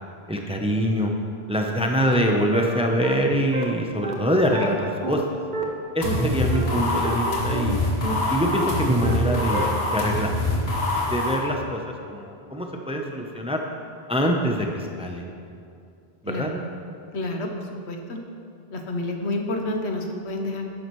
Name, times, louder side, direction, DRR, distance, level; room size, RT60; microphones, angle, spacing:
voice 1, 0.3-1.1 1.5-5.2 5.9-7.8 8.3-10.3 11.1-11.8 12.1-13.6 14.1-15.3 16.2-16.5, equal, 5° right, 2 dB, 0.6 m, -24 dB
sound 1, 1.6-1.7 2.0-2.1 2.5-2.6 3.0-3.1 3.5-3.6 4.0-4.1 4.5-4.6 5.0-5.1 5.5-5.6 6.0-6.1 6.5-6.6 7.0-7.1 7.5-7.6 8.0-8.1 8.5-8.6 9.0-9.1 9.5-9.6, right 2 dB, 45° right, 1.2 m, -30 dB
sound 2, 6.0-11.4, left 1 dB, 70° left, 2.0 m, -25 dB
voice 2, 16.3-16.6 17.1-17.5 17.9-18.2 18.7-20.6, left 2 dB, 85° left, 3 dB, 1.3 m, -29 dB
12.0 x 9.7 x 3.1 m, 2.5 s
omnidirectional pair, 1.1 m